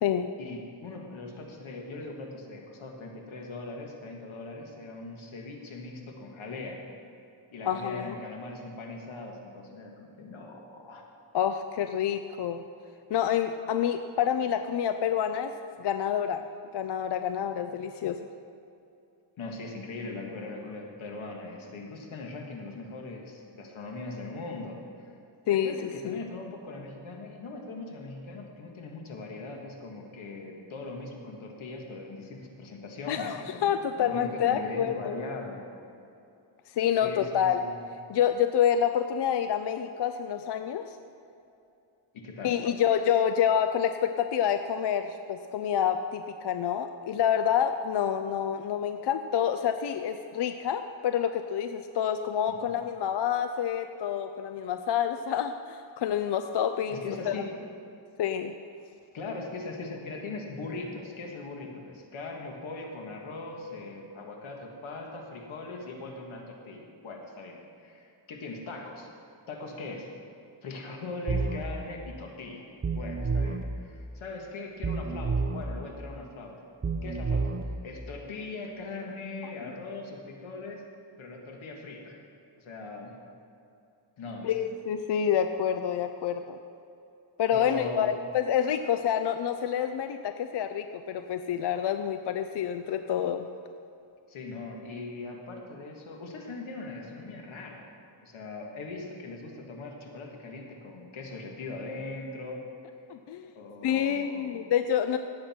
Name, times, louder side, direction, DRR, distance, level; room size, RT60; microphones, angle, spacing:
voice 1, 0.4-6.8 7.5-11.0 19.4-25.2 25.5-35.6 37.0-37.8 42.1-42.5 52.5-52.6 56.9-57.5 59.1-69.1 69.5-70.1 70.6-72.7 72.9-76.5 77.0-80.8 81.2-82.2 82.6-83.1 84.2-84.5 87.5-88.1 94.3-97.9 98.2-102.6 103.0-103.1 103.6-104.5, left 3 dB, 85° left, 1 dB, 1.9 m, -40 dB
voice 2, 7.6-8.2 11.3-12.6 13.1-15.5 15.8-16.4 16.7-18.2 25.5-25.7 26.0-26.2 33.1-35.2 36.7-37.6 38.1-41.0 42.4-57.3 58.2-58.5 84.4-86.6 87.4-93.5 103.1-103.5 103.8-105.2, left 9 dB, 60° left, 8 dB, 0.6 m, -28 dB
sound 1, 71.3-71.6 72.8-73.6 74.8-75.6 76.8-77.6, right 4 dB, 25° right, 0.8 m, -29 dB
16.5 x 7.8 x 4.4 m, 2.7 s
wide cardioid pair, 110°, 47 cm